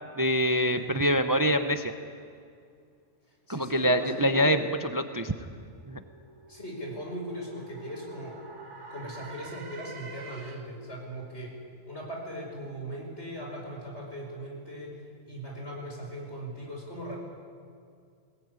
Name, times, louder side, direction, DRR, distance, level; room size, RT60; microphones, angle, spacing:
voice 1, 0.2-1.9 3.5-4.6 4.9-5.3 5.9-6.0, equal, 20° right, 8 dB, 0.7 m, -25 dB
voice 2, 3.5-4.6 6.5-8.4 8.9-11.5 11.9-15.0 15.3-17.2, equal, 65° left, -1 dB, 5.6 m, -39 dB
sound 1, 5.3-10.9, right 3 dB, 75° right, 1.7 m, -47 dB
20.5 x 18.5 x 9.6 m, 2.3 s
omnidirectional pair, 1.2 m